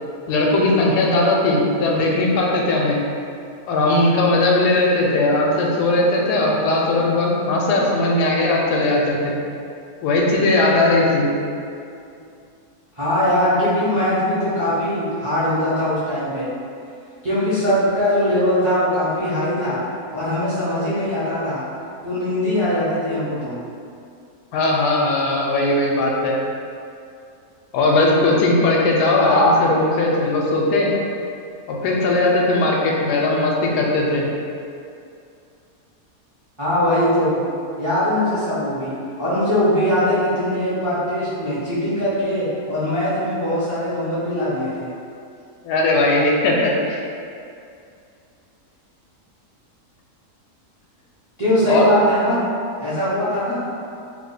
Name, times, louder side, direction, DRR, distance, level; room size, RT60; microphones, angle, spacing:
voice 1, 0.3-3.0 3.7-9.3 10.0-11.3 24.5-26.4 27.7-30.9 31.7-34.2 45.6-47.0 51.7-51.9, left 2 dB, 85° left, -2 dB, 1.1 m, -18 dB
voice 2, 13.0-16.5 17.2-19.8 20.1-21.7 22.0-23.6 29.2-29.6 36.6-37.4 37.8-44.9 51.4-52.4 52.8-53.6, left 1 dB, 45° right, -11 dB, 0.3 m, -21 dB
2.9 x 2.1 x 3.8 m, 2.4 s
omnidirectional pair, 1.7 m